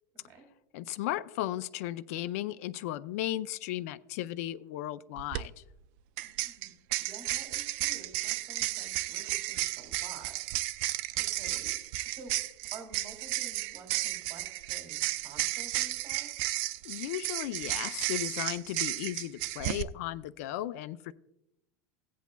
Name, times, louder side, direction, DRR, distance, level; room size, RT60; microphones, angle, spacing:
voice 1, 0.1-0.4 6.2-6.7 7.0-10.4 11.2-11.8 12.0-12.4 12.7-16.3, right 4 dB, 35° right, 2.1 m, -50 dB
voice 2, 0.7-5.5 16.8-21.1, left 14 dB, 65° left, 0.4 m, -35 dB
sound 1, 5.2-5.4 6.2-19.8, right 17 dB, 55° right, 0.4 m, -33 dB
17.0 x 8.3 x 2.2 m
supercardioid pair, 160°, 9 cm